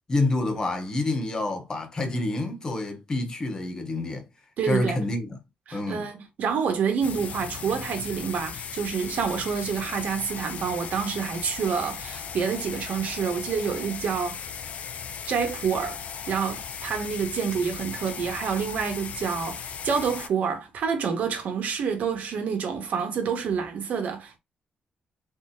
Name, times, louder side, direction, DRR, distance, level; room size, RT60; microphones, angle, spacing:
voice 1, 0.1-4.3 4.6-5.4 5.7-6.1, left 2 dB, 25° left, 1.3 m, -28 dB
voice 2, 4.6-5.0 5.7-14.4 15.2-16.0 16.3-24.4, right 6 dB, 65° right, 1.6 m, -28 dB
sound 1, 7.0-20.3, left 7 dB, 55° left, 0.6 m, -37 dB
4.4 x 4.0 x 2.7 m
wide cardioid pair, 160°, 3 cm